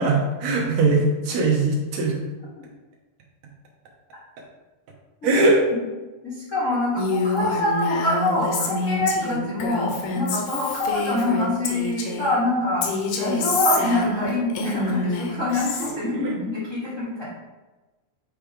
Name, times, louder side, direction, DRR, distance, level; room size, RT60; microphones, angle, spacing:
voice 1, 0.0-2.2 5.2-5.6 15.6-16.4, right 2 dB, 65° right, -1 dB, 2.3 m, -21 dB
voice 2, 6.2-12.8 13.2-17.2, left 2 dB, 50° left, -8 dB, 0.9 m, -25 dB
Female speech woman speaking, 7.0-12.3 12.8-15.9, left 3 dB, 80° left, 2.6 m, -27 dB
8.9 x 3.3 x 5.0 m, 1.2 s
omnidirectional pair, 3.8 m